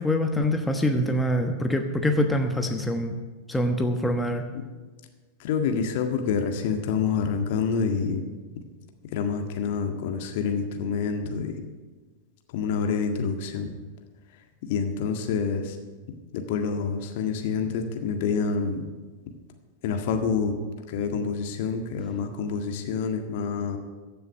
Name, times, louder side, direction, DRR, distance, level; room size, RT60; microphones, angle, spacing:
voice 1, 0.0-3.2 3.5-4.4, left 1 dB, 5° left, 4 dB, 1.2 m, -24 dB
voice 2, 5.4-8.2 9.1-11.5 12.5-13.7 14.6-15.8 16.3-18.8 19.8-20.5 20.9-23.8, left 5 dB, 50° left, 5 dB, 1.7 m, -27 dB
15.0 x 6.9 x 9.0 m, 1.3 s
figure-of-eight pair, 90°, 0 cm